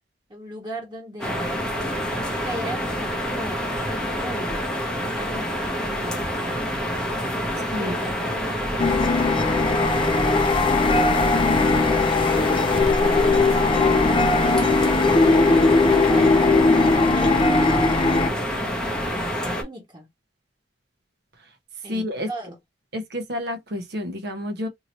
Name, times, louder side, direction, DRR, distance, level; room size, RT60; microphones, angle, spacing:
voice 1, 0.3-2.0 2.4-3.7 4.0-4.8 5.1-6.4 7.4-10.3 10.9-12.2 12.8-13.3 13.6-15.1 15.5-16.4 17.1-20.1 21.8-22.5, equal, 25° right, 1.3 m, -38 dB
sound 1, 1.2-19.6, equal, 5° left, 0.8 m, -27 dB
sound 2, 8.8-18.3, left 3 dB, 30° left, 0.4 m, -19 dB
voice 2, 21.9-22.3 22.9-24.7, left 1 dB, 65° right, 0.9 m, -29 dB
2.9 x 2.8 x 2.8 m
head